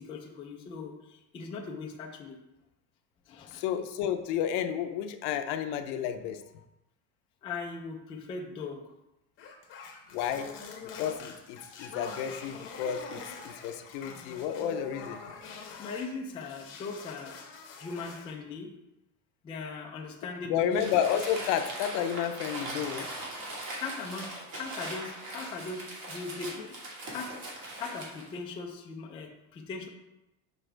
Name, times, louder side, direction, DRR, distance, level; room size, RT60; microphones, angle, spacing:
voice 1, 0.0-2.4 3.3-3.6 7.4-8.8 15.8-17.4 17.8-18.7 19.4-20.9 23.8-26.8 27.1-27.4 27.7-29.9, left 4 dB, 15° left, 0 dB, 0.3 m, -39 dB
voice 2, 3.5-6.4 10.1-10.5 11.0-15.2 20.4-23.1, left 9 dB, 65° left, 8 dB, 0.6 m, -31 dB
sound 1, 9.4-16.1 16.4-18.3, left 5 dB, 30° left, 0.8 m, -45 dB
Crumpling crinkling, 20.7-28.3, right 1 dB, 50° right, 1.9 m, -40 dB
6.3 x 4.7 x 3.3 m, 0.93 s
cardioid pair, 160°, 39 cm